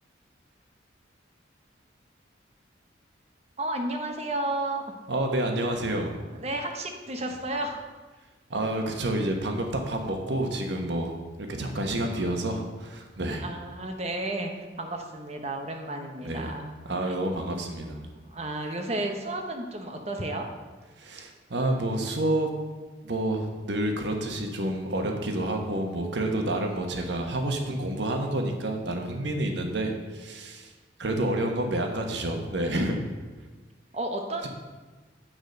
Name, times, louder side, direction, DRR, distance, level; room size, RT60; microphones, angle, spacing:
voice 1, 3.6-4.8 6.3-7.8 13.4-16.7 17.0-17.1 18.1-20.5 33.9-34.5, right 1 dB, 35° right, 4 dB, 0.8 m, -32 dB
voice 2, 5.1-6.2 8.5-13.4 16.2-16.5 16.9-18.1 21.0-22.5 23.0-30.7 31.0-33.0, right 1 dB, 65° right, 3 dB, 1.2 m, -29 dB
9.1 x 5.0 x 6.5 m, 1.3 s
head